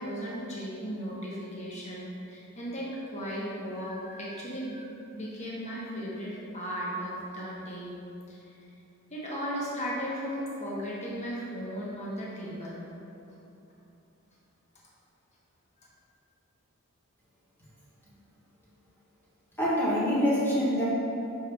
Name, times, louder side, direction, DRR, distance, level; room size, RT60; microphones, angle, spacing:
voice 1, 0.0-7.9 8.3-8.6 9.1-12.8 15.8-15.9, equal, 30° left, -6 dB, 1.2 m, -36 dB
voice 2, 19.6-20.9, equal, 10° left, -8 dB, 1.3 m, -25 dB
6.3 x 5.7 x 3.4 m, 2.8 s
head